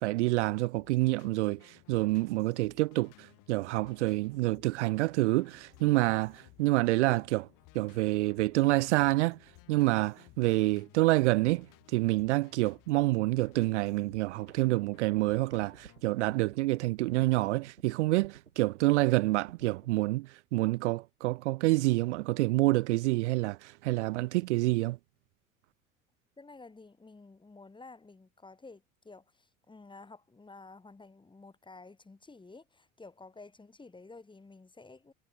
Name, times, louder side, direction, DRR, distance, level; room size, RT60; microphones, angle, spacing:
voice 1, 0.0-7.5 7.7-9.4 9.7-25.0, right 20 dB, 60° right, 0.5 m, -27 dB
sound 1, 0.8-16.0, left 22 dB, 50° left, 4.8 m, -59 dB
sound 2, 14.5-20.1, right 7 dB, 80° right, 4.7 m, -54 dB
voice 2, 26.4-35.1, left 3 dB, 10° left, 2.0 m, -52 dB
figure-of-eight pair, 65°, 39 cm